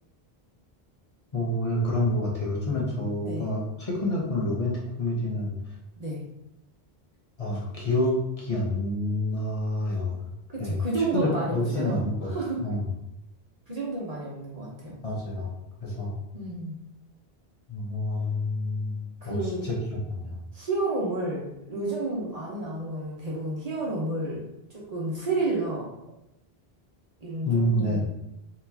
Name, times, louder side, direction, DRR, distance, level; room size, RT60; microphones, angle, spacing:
voice 1, 1.3-5.5 7.4-10.1 10.6-10.8 11.1-12.3 12.6-12.8 15.0-15.5 15.8-16.1 17.7-18.9 19.2-19.4 19.6-20.4 27.4-28.0, left 1 dB, 35° left, -5 dB, 1.0 m, -28 dB
voice 2, 10.5-12.6 13.7-15.0 16.3-16.8 19.2-19.7 20.5-24.4 24.7-25.9 27.2-28.0, right 2 dB, 40° right, -5 dB, 0.9 m, -31 dB
4.3 x 3.0 x 2.7 m, 0.84 s
omnidirectional pair, 1.0 m